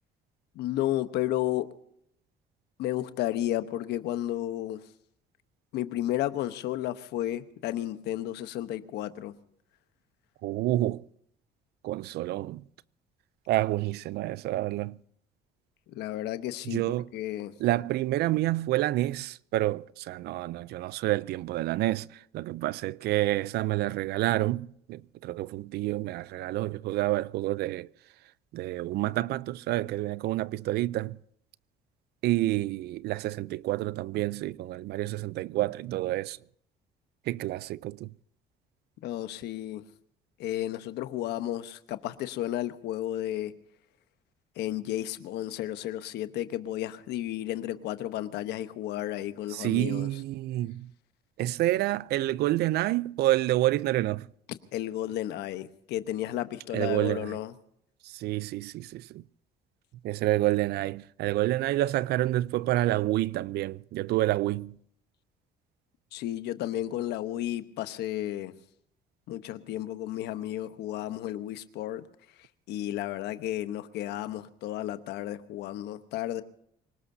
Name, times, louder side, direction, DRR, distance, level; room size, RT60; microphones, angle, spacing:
voice 1, 0.5-1.7 2.8-4.8 5.7-9.3 15.9-16.8 17.1-17.5 39.0-39.8 40.4-43.5 44.6-50.1 54.7-57.5 66.1-68.5 69.3-72.0 72.7-76.4, left 13 dB, 80° left, 1.1 m, -32 dB
voice 2, 10.4-11.0 11.8-12.6 13.5-15.0 16.7-17.1 17.6-27.9 28.5-31.2 32.2-36.4 37.3-38.1 49.5-50.9 51.4-54.3 56.7-57.4 58.0-59.2 60.0-64.7, right 16 dB, 75° right, 0.5 m, -28 dB
26.0 x 18.5 x 2.7 m
cardioid pair, 110°, 17 cm